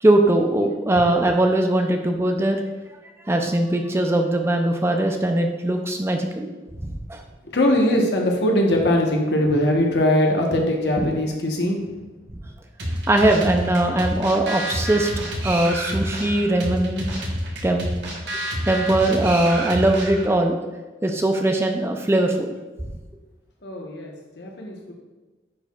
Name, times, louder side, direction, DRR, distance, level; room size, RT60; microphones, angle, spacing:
voice 1, 0.0-2.6 3.3-6.5 6.8-7.2 12.3-12.4 13.1-15.1 15.4-17.0 17.6-17.9 18.7-20.6 21.0-22.5, right 1 dB, 15° right, 4 dB, 0.4 m, -20 dB
voice 2, 7.4-11.9 23.6-24.9, left 1 dB, 70° left, 1 dB, 1.1 m, -21 dB
sound 1, 12.8-20.4, equal, 75° right, 1.2 m, -29 dB
9.7 x 4.6 x 2.3 m, 1.2 s
head